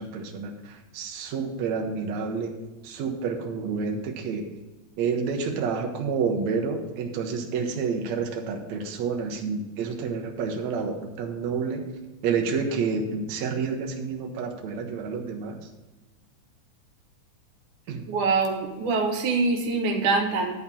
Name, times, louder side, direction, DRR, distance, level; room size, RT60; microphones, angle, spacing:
voice 1, 0.0-2.5 2.8-4.5 5.0-11.8 12.2-15.6 17.9-18.1, right 5 dB, 70° right, 2 dB, 2.1 m, -29 dB
voice 2, 18.1-20.5, right 3 dB, 90° right, 3 dB, 2.7 m, -24 dB
10.5 x 4.3 x 7.0 m, 1.1 s
omnidirectional pair, 3.4 m